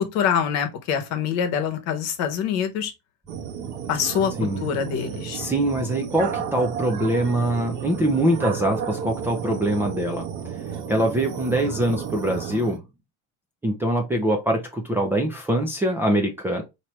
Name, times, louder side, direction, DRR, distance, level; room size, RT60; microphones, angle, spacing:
voice 1, 0.1-2.9 3.9-4.3 4.6-5.4, left 8 dB, 50° left, 1.1 m, -25 dB
sound 1, 3.3-12.8, right 7 dB, 55° right, 1.1 m, -32 dB
voice 2, 5.3-10.3 10.9-12.8 13.6-16.6, right 1 dB, 5° right, 0.5 m, -23 dB
4.8 x 2.9 x 3.0 m
cardioid pair, 160°, 35 cm